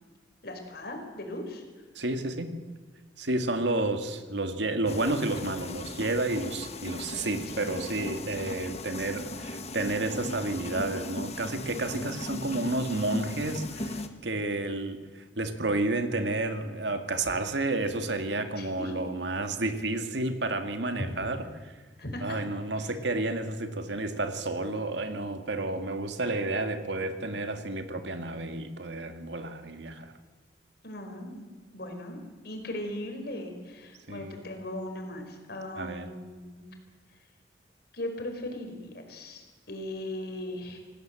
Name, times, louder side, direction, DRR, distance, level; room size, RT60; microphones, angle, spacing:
voice 1, 0.4-1.8 7.2-7.9 12.3-13.0 18.6-18.9 21.0-21.3 22.0-22.4 22.8-22.9 30.8-31.5 31.7-32.2 32.4-36.7 37.9-40.8, left 1 dB, 60° left, 4 dB, 5.0 m, -39 dB
voice 2, 2.0-2.6 3.2-21.4 22.2-30.1 34.1-34.4 35.8-36.1, right 2 dB, 75° right, 7 dB, 2.1 m, -31 dB
sound 1, 4.9-14.1, left 2 dB, 35° left, 1.6 m, -38 dB
27.0 x 17.5 x 7.7 m, 1.4 s
head